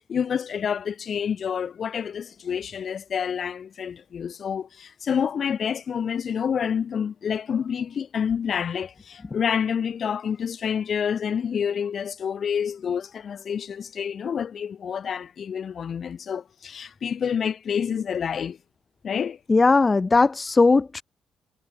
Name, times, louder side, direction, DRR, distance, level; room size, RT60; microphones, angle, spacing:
voice 1, 0.1-18.6 19.0-19.4, left 7 dB, 55° left, 5.6 m, -28 dB
voice 2, 19.5-21.0, left 3 dB, 25° left, 0.5 m, -18 dB
cardioid pair, 90°, 0 cm